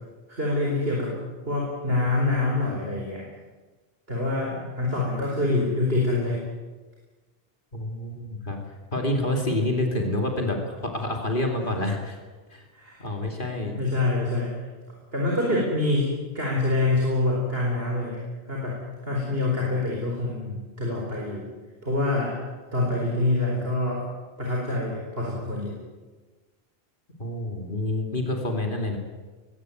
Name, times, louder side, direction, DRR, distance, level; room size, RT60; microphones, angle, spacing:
voice 1, 0.3-1.1 1.5-3.2 4.1-6.4 12.7-13.1 13.7-14.6 15.1-16.1 16.3-18.2 18.5-18.8 19.0-21.5 21.8-22.3 22.7-24.0 24.4-25.7, left 2 dB, 70° right, -2 dB, 4.7 m, -25 dB
voice 2, 7.7-12.2 12.5-12.7 13.0-13.7 27.2-29.0, left 1 dB, 55° left, 2 dB, 2.9 m, -28 dB
20.5 x 17.0 x 9.2 m, 1.3 s
omnidirectional pair, 1.0 m